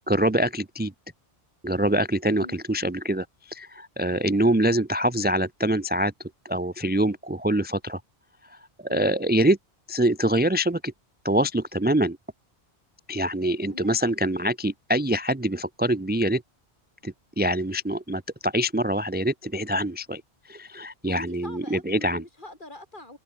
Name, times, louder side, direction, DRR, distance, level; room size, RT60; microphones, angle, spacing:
voice 1, 0.1-0.9 1.6-6.1 6.4-8.0 8.5-9.6 9.9-10.9 11.2-12.2 13.1-16.4 17.0-20.2 20.5-22.2, right 1 dB, 10° right, 0.7 m, -25 dB
voice 2, 2.2-2.6 8.9-9.1 13.6-14.1 20.7-23.2, left 2 dB, 50° left, 4.4 m, -43 dB
omnidirectional pair, 1.1 m